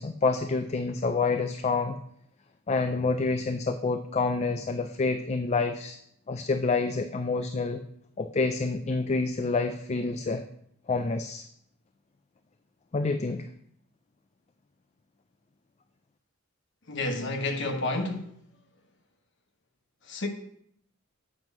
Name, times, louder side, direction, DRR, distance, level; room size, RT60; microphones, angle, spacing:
voice 1, 0.0-2.0 2.7-6.0 6.3-7.8 8.2-10.4 10.9-11.5 12.9-13.5, left 4 dB, 30° left, 0.4 m, -28 dB
voice 2, 16.9-18.4 20.1-20.3, left 2 dB, 60° left, 1.1 m, -30 dB
7.7 x 6.1 x 5.3 m
head